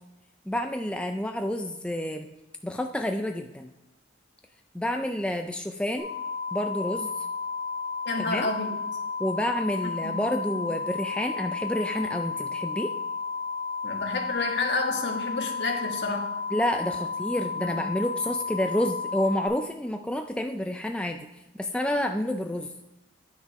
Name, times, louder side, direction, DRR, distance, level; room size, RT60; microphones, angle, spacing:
voice 1, 0.5-2.3 2.6-3.7 4.7-6.1 6.5-7.1 8.2-8.5 9.2-12.9 16.5-21.3 21.5-22.7, left 1 dB, 5° left, 4 dB, 0.3 m, -29 dB
sound 1, 6.0-19.5, left 5 dB, 55° right, 2.7 m, -33 dB
voice 2, 8.0-8.7 10.0-10.1 10.5-10.6 13.8-16.3 17.6-17.8, left 3 dB, 65° left, 2 dB, 1.5 m, -30 dB
9.7 x 6.3 x 4.7 m, 1.0 s
head